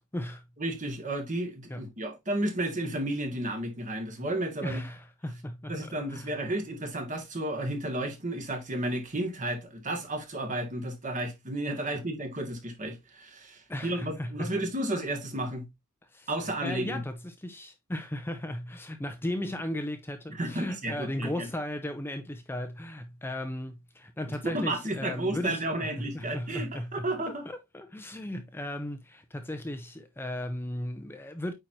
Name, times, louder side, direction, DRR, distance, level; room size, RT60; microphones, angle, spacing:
voice 1, 0.0-0.4 1.7-1.9 4.6-6.4 11.8-12.0 13.7-14.5 16.1-16.3 16.6-27.1 27.5-31.5, left 1 dB, 10° left, 0.6 m, -36 dB
voice 2, 0.6-4.8 5.7-15.7 16.3-17.0 20.3-21.5 24.3-27.5, right 1 dB, 35° right, 1.8 m, -32 dB
8.6 x 4.6 x 2.7 m
head